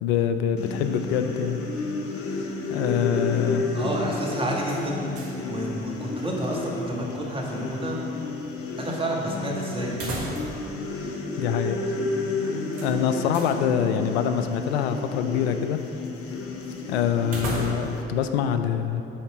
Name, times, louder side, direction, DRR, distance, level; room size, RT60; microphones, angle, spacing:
voice 1, 0.0-1.6 2.7-3.6 11.4-11.8 12.8-15.8 16.9-19.0, left 8 dB, 75° left, 9 dB, 0.5 m, -25 dB
sound 1, 0.6-18.0, left 3 dB, 45° left, 0.8 m, -32 dB
voice 2, 3.7-5.1 5.5-8.0 8.8-10.0, right 1 dB, 15° right, -3 dB, 1.6 m, -30 dB
sound 2, 4.6-5.5 5.8-5.9 9.9-10.7 11.0-11.1 12.7-13.6 17.2-18.1, right 2 dB, 70° right, 1.3 m, -34 dB
8.6 x 4.1 x 4.9 m, 3.0 s
figure-of-eight pair, 50°, 32 cm